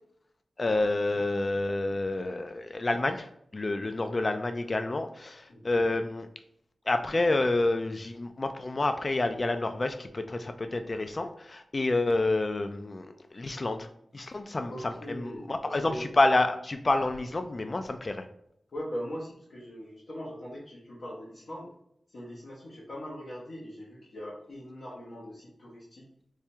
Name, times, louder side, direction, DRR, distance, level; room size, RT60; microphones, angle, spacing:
voice 1, 0.6-6.3 6.9-18.3, left 2 dB, 45° left, 8 dB, 0.3 m, -29 dB
voice 2, 5.5-5.9 14.7-16.1 18.7-21.7 22.1-26.1, equal, 80° left, -6 dB, 0.9 m, -41 dB
4.6 x 2.3 x 2.8 m, 0.73 s
wide cardioid pair, 65°, 0 cm